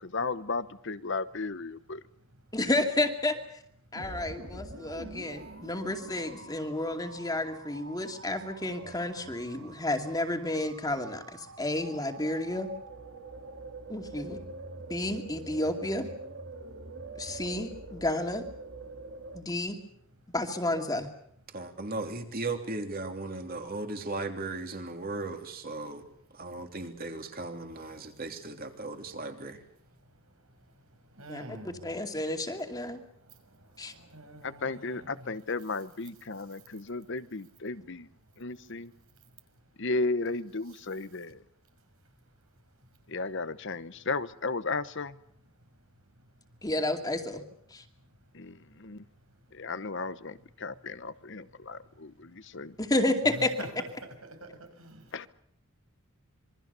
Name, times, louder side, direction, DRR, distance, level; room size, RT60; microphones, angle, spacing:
voice 1, 0.0-2.0 34.4-38.1 38.4-38.9 39.8-41.4 43.1-45.1 48.3-49.0 49.5-52.7 55.1-55.3, left 3 dB, 55° left, 1.0 m, -34 dB
voice 2, 2.5-3.4 3.9-12.7 13.9-14.4 14.9-16.1 17.2-18.4 19.3-19.8 20.3-21.1 31.3-31.4 31.8-33.0 33.8-33.9 46.6-47.4 47.7-47.8 52.8-53.5, left 1 dB, 15° left, 2.5 m, -31 dB
sound 1, 3.9-19.4, right 3 dB, 55° right, 2.3 m, -45 dB
voice 3, 21.5-26.0 26.3-29.6, right 2 dB, 40° right, 3.2 m, -37 dB
voice 4, 31.2-31.9 33.9-35.3 53.3-54.5 54.8-55.0, right 1 dB, 75° right, 6.3 m, -45 dB
27.0 x 23.0 x 6.9 m
head